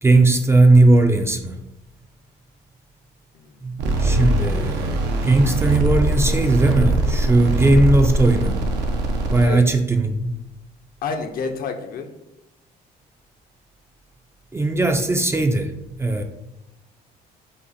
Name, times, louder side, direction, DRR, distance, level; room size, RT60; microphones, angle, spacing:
voice 1, 0.0-1.6 3.6-8.6 9.3-10.4 14.5-15.7 16.0-16.2, right 2 dB, 15° right, 5 dB, 0.4 m, -18 dB
voice 2, 3.3-3.7 9.4-9.7 11.0-12.1, left 5 dB, 60° left, 6 dB, 0.7 m, -29 dB
sound 1, 3.8-9.4, right 2 dB, 90° right, 0.7 m, -22 dB
5.1 x 2.5 x 4.0 m, 0.91 s
cardioid pair, 110°, 17 cm